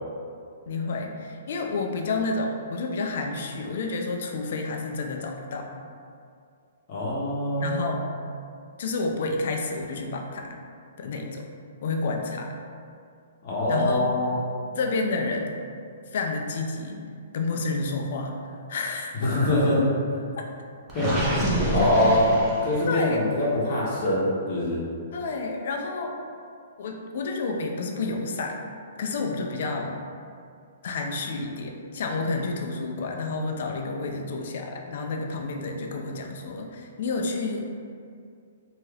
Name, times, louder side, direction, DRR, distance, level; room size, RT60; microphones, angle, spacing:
voice 1, 0.7-5.7 7.6-8.1 8.8-10.6 11.0-11.5 11.8-12.5 13.7-14.1 14.8-15.6 16.1-17.0 17.3-18.4 18.7-19.3 21.8-21.9 22.9-23.2 25.1-26.2 26.8-28.6 29.0-30.0 30.8-37.7, left 3 dB, 50° left, 2 dB, 0.3 m, -30 dB
voice 2, 6.9-7.9 13.4-14.4 19.2-19.8 20.1-20.2 20.9-21.1 21.5-22.3 22.6-24.8, left 1 dB, 35° left, -6 dB, 0.8 m, -24 dB
Gurgling, 20.9-23.0, right 1 dB, 15° right, 0.4 m, -27 dB
2.7 x 2.3 x 3.2 m, 2.3 s
hypercardioid pair, 170°, 0 cm